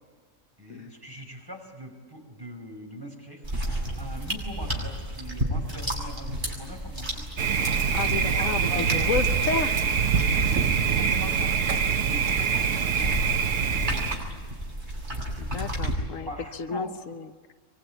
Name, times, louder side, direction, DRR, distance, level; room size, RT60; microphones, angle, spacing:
voice 1, 0.6-3.4 4.0-7.3 8.3-9.1 10.1-10.3 10.9-13.2 16.3-16.9, equal, 15° right, 2 dB, 4.9 m, -41 dB
sound 1, 3.4-15.9, right 1 dB, 35° right, 7.3 m, -33 dB
Thunder, 7.4-14.2, right 6 dB, 75° right, 1.5 m, -24 dB
voice 2, 7.9-9.8 15.4-17.3, left 5 dB, 85° left, 9 dB, 1.4 m, -31 dB
24.5 x 24.5 x 9.9 m, 1.5 s
omnidirectional pair, 1.3 m